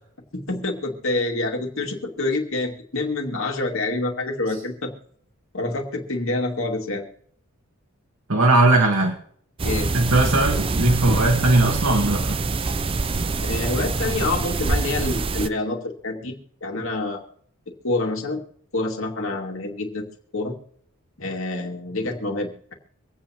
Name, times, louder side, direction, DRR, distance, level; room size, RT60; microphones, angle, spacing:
voice 1, 0.3-4.9 5.5-7.0 9.6-9.9 13.4-17.2 17.8-18.4 18.7-20.1 20.3-20.6 21.2-22.7, left 2 dB, 65° left, 1 dB, 2.4 m, -27 dB
voice 2, 8.3-9.1 9.9-12.4 13.2-13.3, right 2 dB, 70° right, 1 dB, 1.6 m, -19 dB
sound 1, 9.6-15.5, right 3 dB, 25° right, 0.4 m, -25 dB
25.5 x 8.5 x 3.0 m, 0.64 s
head